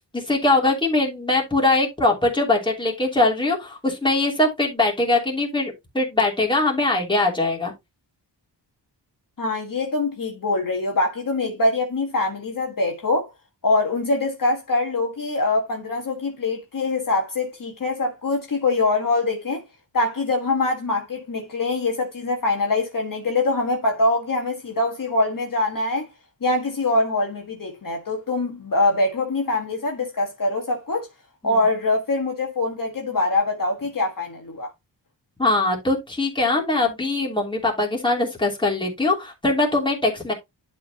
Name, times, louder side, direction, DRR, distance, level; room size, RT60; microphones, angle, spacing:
voice 1, 0.1-7.7 31.4-31.6 35.4-40.3, left 2 dB, 10° left, 2.9 m, -22 dB
voice 2, 9.4-13.3 13.6-19.6 19.9-26.1 26.4-31.1 31.4-34.7, left 2 dB, 50° left, 1.5 m, -23 dB
11.0 x 4.6 x 2.9 m
wide cardioid pair, 145°, 43 cm